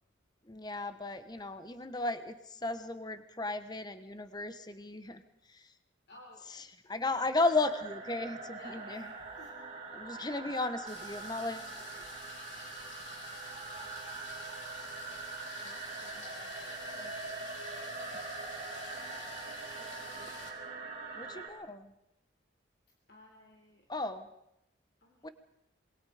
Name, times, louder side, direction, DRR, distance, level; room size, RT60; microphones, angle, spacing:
voice 1, 0.5-5.2 5.5-5.6 6.9-9.1 9.9-11.7 19.8-19.9 20.2-20.3 21.1-21.9 23.9-24.3 25.2-25.3, left 2 dB, 20° left, 11 dB, 1.1 m, -35 dB
voice 2, 6.1-6.7 7.0-7.3 8.5-9.7 10.5-10.7 11.5-12.1 15.5-17.5 23.1-23.9 25.0-25.3, left 2 dB, 55° left, 0 dB, 3.5 m, -57 dB
sound 1, 7.4-21.5, right 4 dB, 30° right, 3.7 m, -43 dB
sound 2, 10.9-20.5, left 4 dB, 85° left, 5.0 m, -50 dB
26.5 x 22.5 x 5.0 m, 0.82 s
head